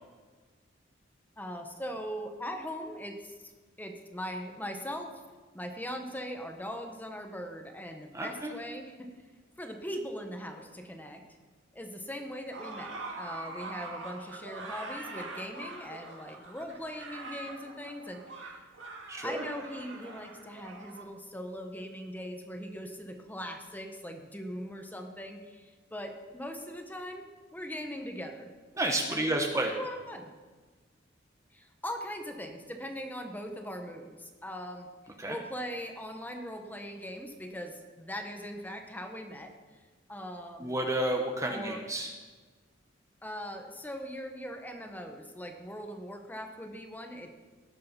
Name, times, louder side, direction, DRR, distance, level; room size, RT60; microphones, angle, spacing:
voice 1, 1.4-3.3 3.8-5.2 5.5-9.1 9.6-11.2 11.7-18.6 19.2-28.5 29.1-30.3 31.5-34.9 35.3-39.5 40.1-40.7 41.5-41.8 43.2-47.3, equal, 10° left, 4 dB, 1.1 m, -40 dB
voice 2, 8.1-8.5 19.1-19.4 28.8-29.7 35.2-35.4 40.6-42.1, right 1 dB, 15° right, 2 dB, 0.9 m, -30 dB
sound 1, 12.5-21.0, right 3 dB, 80° right, 1.9 m, -43 dB
17.5 x 6.7 x 5.3 m, 1.4 s
head